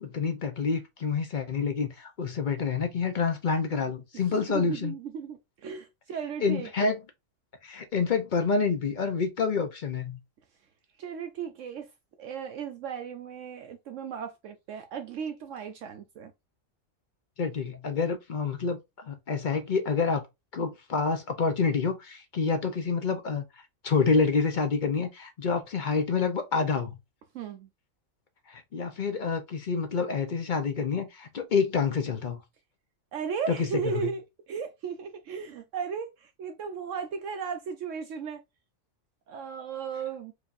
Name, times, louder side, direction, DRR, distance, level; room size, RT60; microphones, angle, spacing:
voice 1, 0.0-4.9 6.4-7.0 7.6-10.2 17.4-20.2 20.5-23.4 23.8-26.9 28.5-32.4 33.5-34.1, left 5 dB, 45° left, 0.7 m, -28 dB
voice 2, 4.1-7.0 11.0-11.9 12.2-16.3 27.3-27.7 33.1-38.4 39.3-40.3, right 6 dB, 70° right, 0.9 m, -36 dB
4.9 x 2.8 x 2.5 m
omnidirectional pair, 1.4 m